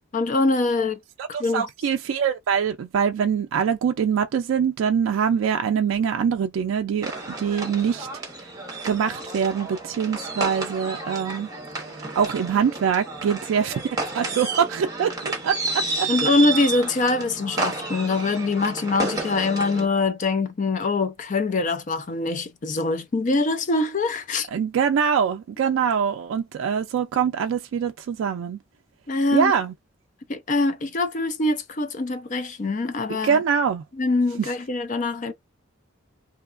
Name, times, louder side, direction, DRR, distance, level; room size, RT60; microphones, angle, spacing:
voice 1, 0.1-1.0 1.4-1.6 16.1-24.5 29.1-29.5 30.3-33.4 34.0-35.3, left 3 dB, 40° left, 0.4 m, -23 dB
voice 2, 1.2-7.1 7.4-8.1 8.8-11.5 12.2-13.7 14.1-16.1 24.5-28.6 29.3-29.7 33.1-33.8 34.4-34.5, right 7 dB, 80° right, 0.3 m, -24 dB
sound 1, 7.0-19.9, right 3 dB, 20° right, 0.9 m, -31 dB
2.7 x 2.3 x 2.4 m
head